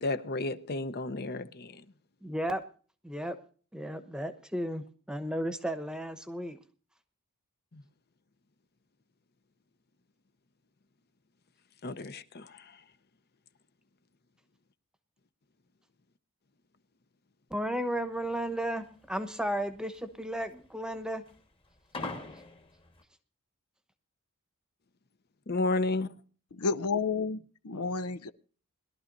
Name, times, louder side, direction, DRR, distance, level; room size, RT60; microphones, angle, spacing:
voice 1, 0.0-1.8 7.7-7.8 11.8-12.8 25.5-26.1, left 2 dB, 45° left, 0.8 m, -32 dB
voice 2, 2.2-2.6 3.0-3.4 3.7-6.6 17.5-21.2, right 1 dB, 5° right, 1.0 m, -34 dB
sound 1, 18.0-23.0, left 3 dB, 25° left, 1.5 m, -43 dB
voice 3, 26.6-28.3, left 4 dB, 85° left, 0.7 m, -31 dB
21.5 x 12.5 x 2.6 m
head